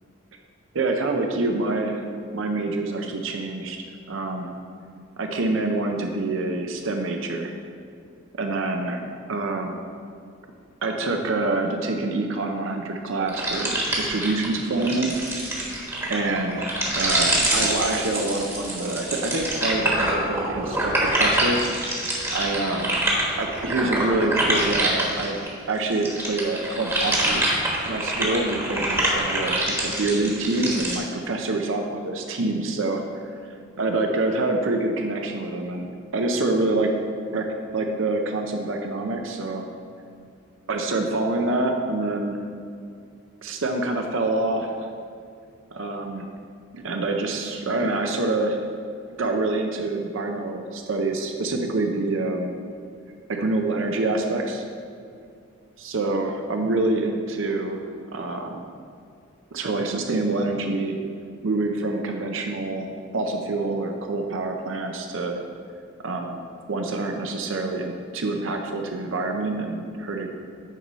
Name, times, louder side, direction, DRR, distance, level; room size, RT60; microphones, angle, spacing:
voice 1, 0.7-2.0 2.3-3.8 4.1-4.5 5.2-7.6 8.4-9.8 10.8-15.2 16.1-21.6 22.3-22.9 23.4-25.4 25.7-27.5 27.8-33.0 33.8-36.9 37.3-39.7 40.7-42.4 43.4-44.7 45.7-46.3 46.7-48.6 49.2-52.5 53.4-54.6 55.8-57.8 58.1-58.6 59.5-60.9 61.4-65.4 66.0-66.4 66.7-70.3, right 2 dB, 75° right, 3 dB, 0.6 m, -26 dB
sound 1, 13.3-25.5 25.9-31.0, right 1 dB, 15° right, 1.2 m, -25 dB
9.1 x 5.4 x 4.1 m, 2.4 s
head